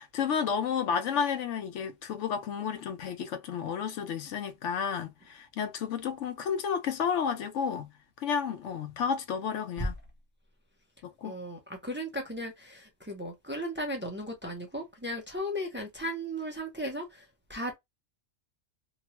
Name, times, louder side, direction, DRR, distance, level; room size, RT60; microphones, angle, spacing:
voice 1, 0.0-9.9 11.0-11.3, left 7 dB, 85° left, 1.0 m, -31 dB
voice 2, 11.2-17.2 17.5-17.8, equal, 10° right, 0.6 m, -36 dB
2.9 x 2.2 x 2.8 m
omnidirectional pair, 1.2 m